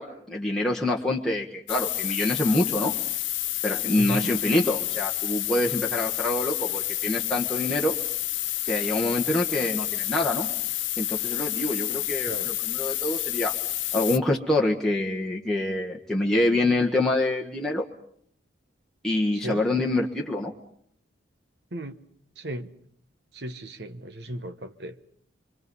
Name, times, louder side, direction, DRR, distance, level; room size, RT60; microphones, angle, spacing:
voice 1, 0.0-2.9 3.6-8.0 8.7-10.5 11.0-13.5 13.9-17.8 19.0-20.5, left 1 dB, ahead, 1.6 m, -26 dB
sound 1, 1.7-14.2, left 15 dB, 85° left, 0.9 m, -29 dB
voice 2, 4.0-4.3 12.3-12.5 19.4-19.6 21.7-22.0 22.4-22.7 23.3-25.0, right 1 dB, 60° right, 1.3 m, -35 dB
26.0 x 25.0 x 5.6 m
head